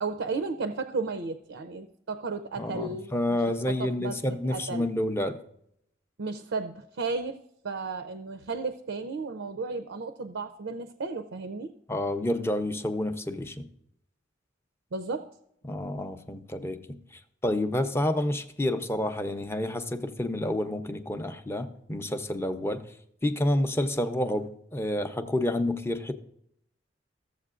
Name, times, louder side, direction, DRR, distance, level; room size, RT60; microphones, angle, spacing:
voice 1, 0.0-3.4 3.7-4.2 4.5-4.9 6.2-7.4 7.6-11.7 14.9-15.3, right 4 dB, 80° right, 0.5 m, -34 dB
voice 2, 2.6-5.4 11.9-13.7 15.6-17.0 17.4-22.9 23.2-26.1, left 1 dB, 15° left, 0.5 m, -29 dB
15.0 x 7.3 x 2.4 m
head